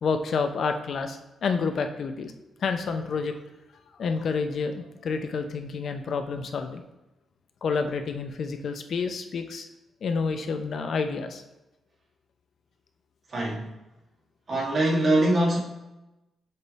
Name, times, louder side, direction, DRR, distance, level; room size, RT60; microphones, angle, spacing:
voice 1, 0.0-2.3 2.6-3.3 4.0-6.8 7.6-9.7 10.0-11.4, left 5 dB, 55° left, 7 dB, 0.5 m, -29 dB
voice 2, 13.3-13.7 14.5-15.6, right 1 dB, 40° right, -3 dB, 1.6 m, -23 dB
6.6 x 3.5 x 4.0 m, 1.0 s
cardioid pair, 145°, 0 cm